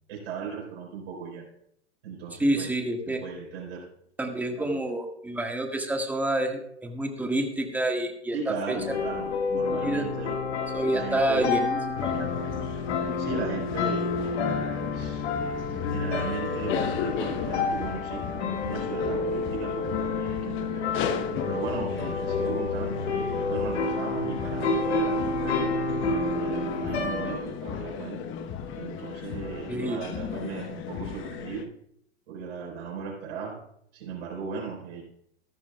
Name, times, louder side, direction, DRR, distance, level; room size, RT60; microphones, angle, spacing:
voice 1, 0.1-1.5 2.0-2.6 3.0-3.8 4.6-4.7 8.3-10.4 10.9-11.5 13.2-15.6 15.9-21.0 21.4-25.8 26.3-28.3 28.7-31.7 32.3-33.6 33.9-35.0, right 5 dB, 65° right, -3 dB, 4.5 m, -37 dB
voice 2, 2.4-3.2 4.2-9.0 9.5-10.0 10.7-12.1 29.7-30.0, right 1 dB, 5° right, 3 dB, 1.7 m, -28 dB
sound 1, 8.8-27.4, left 4 dB, 75° left, 1.9 m, -29 dB
sound 2, 12.0-31.7, left 7 dB, 35° left, 1.1 m, -35 dB
14.0 x 12.5 x 2.3 m, 0.72 s
hypercardioid pair, 100°, 33 cm